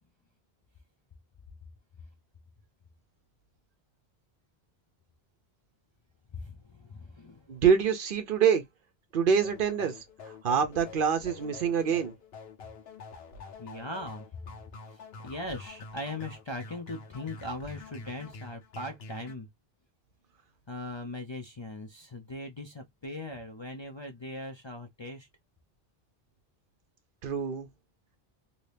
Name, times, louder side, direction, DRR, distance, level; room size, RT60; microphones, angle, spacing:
voice 1, 6.3-7.5 13.6-14.3 14.8-19.5 20.7-25.3, left 1 dB, 35° left, 0.5 m, -40 dB
voice 2, 7.5-8.6 9.1-9.9 10.4-12.1 27.2-27.7, right 7 dB, 60° right, 0.7 m, -25 dB
sound 1, 9.4-19.3, left 4 dB, 75° left, 1.1 m, -47 dB
2.8 x 2.7 x 3.3 m
omnidirectional pair, 1.0 m